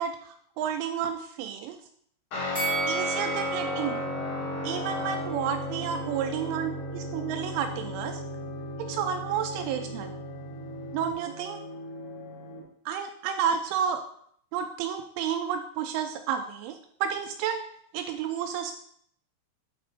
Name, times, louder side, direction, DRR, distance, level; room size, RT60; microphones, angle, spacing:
voice 1, 0.0-1.8 2.9-4.1 4.6-8.2 8.8-10.1 10.9-11.6 12.9-14.0 14.5-17.6 17.9-18.8, right 8 dB, 85° right, 6 dB, 2.9 m, -31 dB
Guitar, 2.3-11.1, left 1 dB, 85° left, 5.0 m, -35 dB
Bell, 2.5-5.7 6.1-6.2, right 4 dB, 10° left, 1.2 m, -35 dB
sound 1, 3.1-12.6, left 2 dB, 65° left, 4.3 m, -43 dB
9.1 x 4.2 x 4.3 m, 0.64 s
omnidirectional pair, 5.8 m